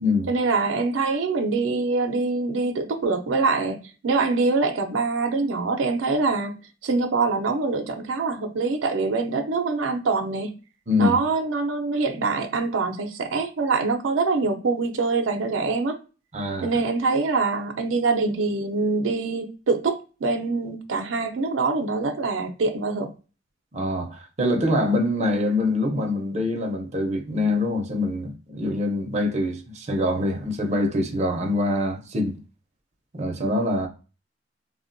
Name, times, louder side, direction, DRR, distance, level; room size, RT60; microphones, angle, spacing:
voice 1, 0.3-6.6 6.8-10.5 11.0-16.0 16.6-23.1, right 3 dB, 90° right, 0.5 m, -24 dB
voice 2, 10.9-11.2 16.3-16.7 23.7-32.3 33.1-33.9, left 2 dB, 35° right, 0.5 m, -24 dB
3.4 x 2.1 x 2.5 m
head